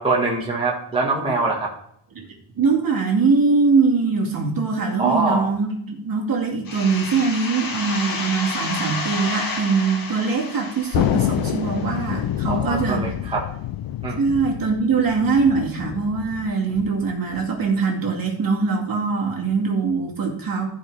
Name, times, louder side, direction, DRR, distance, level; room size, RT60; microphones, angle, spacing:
voice 1, 0.0-1.7 5.0-5.5 12.5-13.5 14.0-14.2, right 3 dB, 10° right, -3 dB, 1.5 m, -23 dB
voice 2, 2.6-13.0 14.2-20.6, right 4 dB, 50° right, 0 dB, 2.5 m, -22 dB
sound 1, 6.7-12.2, left 3 dB, 50° left, 1.6 m, -30 dB
Thunder, 10.9-17.8, left 13 dB, 80° left, 0.6 m, -27 dB
14.0 x 5.0 x 4.8 m, 0.70 s
wide cardioid pair, 175°, 45 cm